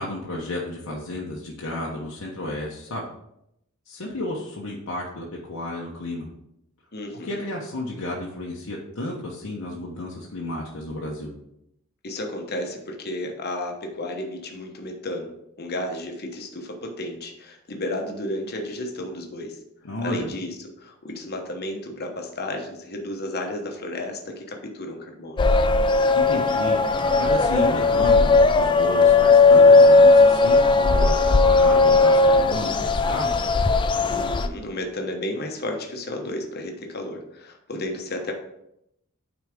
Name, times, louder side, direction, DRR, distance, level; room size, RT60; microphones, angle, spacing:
voice 1, 0.0-3.1 3.9-6.3 7.1-11.3 19.8-20.3 26.1-33.5, left 1 dB, 75° left, -3 dB, 1.0 m, -32 dB
voice 2, 6.9-7.4 12.0-15.3 15.6-19.6 20.0-25.4 34.1-38.3, left 1 dB, 45° left, 3 dB, 1.0 m, -33 dB
sound 1, 25.4-34.5, left 3 dB, 20° left, 0.3 m, -17 dB
9.3 x 4.0 x 3.6 m, 0.79 s
head